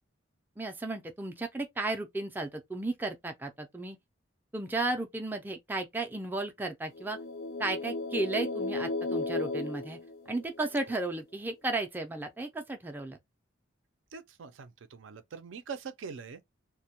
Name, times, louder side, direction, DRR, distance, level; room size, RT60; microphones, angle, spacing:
voice 1, 0.6-4.0 4.5-7.2 7.6-10.0 10.3-13.2, right 2 dB, 10° right, 0.3 m, -34 dB
sound 1, 6.9-10.8, left 2 dB, 80° left, 0.4 m, -34 dB
voice 2, 14.1-16.4, right 5 dB, 75° right, 0.4 m, -43 dB
2.1 x 2.1 x 2.7 m
head